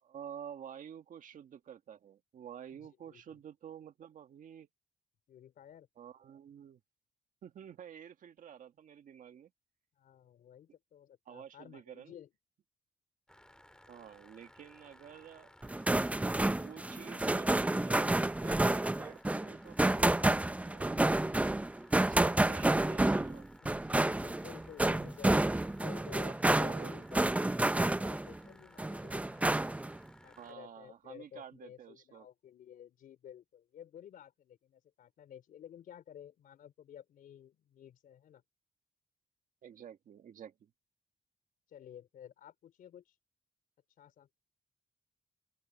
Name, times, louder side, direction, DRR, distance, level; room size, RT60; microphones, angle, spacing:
voice 1, 0.0-4.7 6.0-6.8 7.4-9.5 11.3-12.1 13.9-15.6 16.6-21.1 22.0-23.5 26.3-26.4 26.6-26.9 30.4-32.3 39.6-40.7, right 9 dB, 70° right, 1.7 m, -50 dB
voice 2, 2.7-3.4 5.3-5.9 10.0-12.3 23.6-27.3 27.7-29.5 30.2-38.4 41.7-43.1 44.0-44.3, left 10 dB, 80° left, 4.0 m, -53 dB
sound 1, 13.3-30.5, left 1 dB, 5° left, 2.8 m, -60 dB
sound 2, 15.6-28.4 28.8-30.0, right 2 dB, 10° right, 0.7 m, -29 dB
open air
cardioid pair, 105°, 14 cm